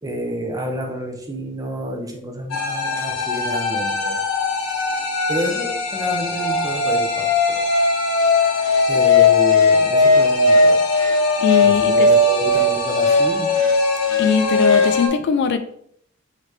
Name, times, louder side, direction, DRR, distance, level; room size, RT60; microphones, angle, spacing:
voice 1, 0.0-4.2 5.3-7.6 8.9-10.8 11.6-13.5, right 1 dB, 15° right, 2 dB, 0.6 m, -29 dB
sound 1, 2.5-15.1, left 3 dB, 80° left, 0.8 m, -18 dB
voice 2, 11.4-12.1 14.2-15.6, left 6 dB, 55° left, 9 dB, 0.3 m, -20 dB
3.9 x 3.2 x 3.1 m, 0.67 s
head